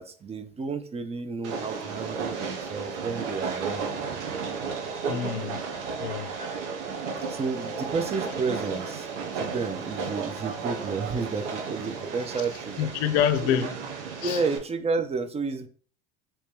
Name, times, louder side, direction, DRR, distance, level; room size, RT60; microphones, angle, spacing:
voice 1, 0.0-3.9 7.3-12.9 13.4-13.7 14.2-15.7, right 4 dB, 20° right, 0.4 m, -31 dB
Train, 1.4-14.6, right 5 dB, 80° right, 0.9 m, -33 dB
voice 2, 5.1-5.7 6.0-6.3 12.8-13.8 14.2-14.4, left 9 dB, 75° left, 0.6 m, -26 dB
3.1 x 3.0 x 3.4 m
hypercardioid pair, 80°, 34 cm